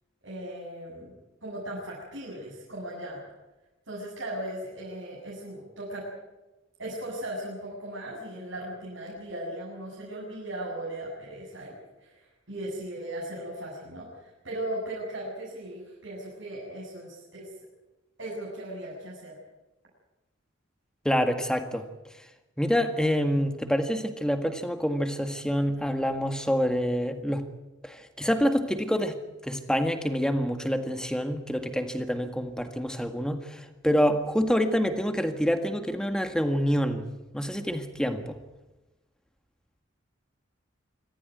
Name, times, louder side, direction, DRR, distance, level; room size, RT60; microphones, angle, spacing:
voice 1, 0.2-1.1 1.4-3.2 3.9-6.1 6.8-17.5 18.2-19.4, right 1 dB, 75° right, -5 dB, 7.7 m, -37 dB
voice 2, 21.1-21.9 22.6-27.4 27.8-29.2 29.4-37.0 37.3-38.4, equal, 5° left, 7 dB, 1.7 m, -27 dB
25.5 x 14.5 x 9.5 m, 1.1 s
head